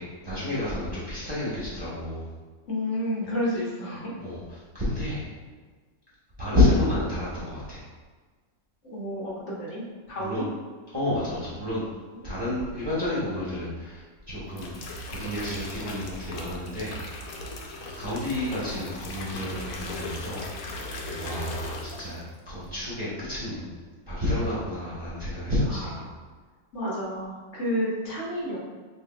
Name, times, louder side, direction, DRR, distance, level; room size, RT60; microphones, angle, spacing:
voice 1, 0.0-2.3 4.2-4.4 4.7-5.3 6.4-7.8 10.2-10.4 10.9-11.9 12.2-14.0 14.3-17.0 17.4-17.5 18.0-20.7 21.2-23.8 24.1-26.0, left 1 dB, 20° right, -10 dB, 0.9 m, -29 dB
voice 2, 2.7-4.1 8.8-9.8 10.1-10.5 12.2-12.3 25.6-25.9 26.7-28.6, equal, 60° left, -5 dB, 1.2 m, -30 dB
sound 1, 14.3-22.3 22.6-23.0, left 2 dB, 85° left, 1.1 m, -38 dB
6.0 x 2.6 x 2.3 m, 1.4 s
omnidirectional pair, 1.4 m